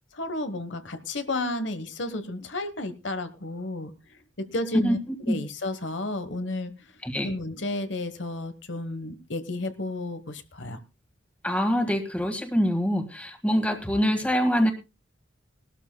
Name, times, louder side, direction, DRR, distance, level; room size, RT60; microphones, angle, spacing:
voice 1, 0.1-3.9 4.4-5.0 5.3-6.7 7.2-10.8, left 2 dB, 65° left, 9 dB, 1.2 m, -32 dB
voice 2, 11.4-14.7, equal, 5° left, 6 dB, 1.7 m, -24 dB
20.5 x 12.5 x 2.2 m, 0.27 s
head